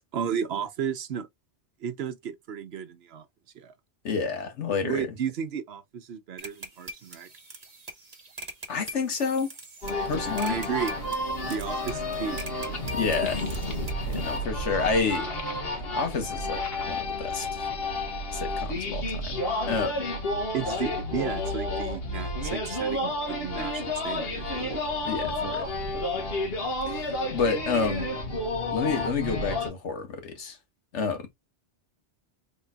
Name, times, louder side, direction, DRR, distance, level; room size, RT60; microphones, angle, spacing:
voice 1, 0.1-1.3 1.8-3.2 3.5-3.7 4.8-7.3 10.4-10.9 11.4-12.4 20.5-24.8, right 7 dB, 70° right, 0.9 m, -33 dB
voice 2, 4.0-5.1 8.7-9.5 10.1-10.6 12.9-13.4 14.0-15.3 15.9-17.5 18.3-19.4 19.7-20.1 25.0-25.7 26.9-28.1 28.7-30.6 30.9-31.3, left 5 dB, 85° left, 1.5 m, -29 dB
sound 1, 6.4-14.4, right 2 dB, 40° right, 1.1 m, -43 dB
sound 2, 9.8-29.7, left 1 dB, 60° left, 1.6 m, -31 dB
4.2 x 3.7 x 2.2 m
omnidirectional pair, 1.2 m